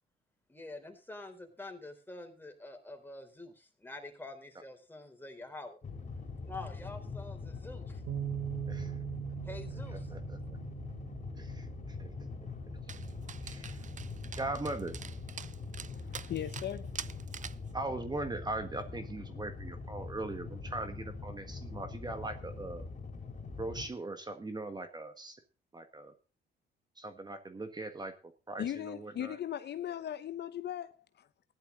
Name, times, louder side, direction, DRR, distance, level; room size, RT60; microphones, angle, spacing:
voice 1, 0.5-5.8 6.5-8.0 9.4-10.1, left 2 dB, 10° left, 4.0 m, -46 dB
sound 1, 5.8-23.9, left 4 dB, 35° left, 3.7 m, -43 dB
Bass guitar, 8.1-14.3, right 11 dB, 90° right, 3.1 m, -42 dB
voice 2, 9.9-10.4 11.4-12.3 13.4-13.8 14.3-15.0 17.7-22.9 23.6-25.4 25.7-26.1 27.0-29.4, right 2 dB, 20° right, 1.6 m, -40 dB
Dog, 12.9-17.7, right 8 dB, 40° right, 0.6 m, -46 dB
voice 3, 15.9-17.2 28.6-31.3, left 10 dB, 60° left, 0.8 m, -39 dB
15.5 x 11.0 x 3.9 m
cardioid pair, 90°, 20 cm